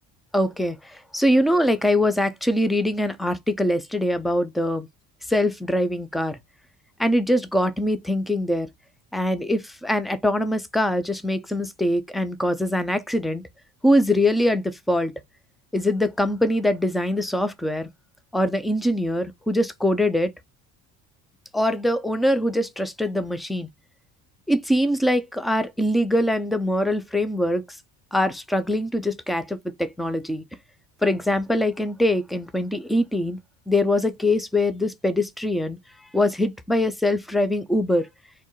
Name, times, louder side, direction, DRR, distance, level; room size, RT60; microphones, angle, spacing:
voice 1, 0.3-4.9 5.3-6.4 7.0-8.7 9.1-13.4 13.8-15.1 15.7-17.9 18.3-20.3 21.5-23.7 24.5-27.6 28.1-30.4 31.0-33.4 33.7-35.8 36.1-38.1, left 1 dB, ahead, 0.3 m, -23 dB
4.4 x 3.1 x 3.0 m
cardioid pair, 130°, 40 cm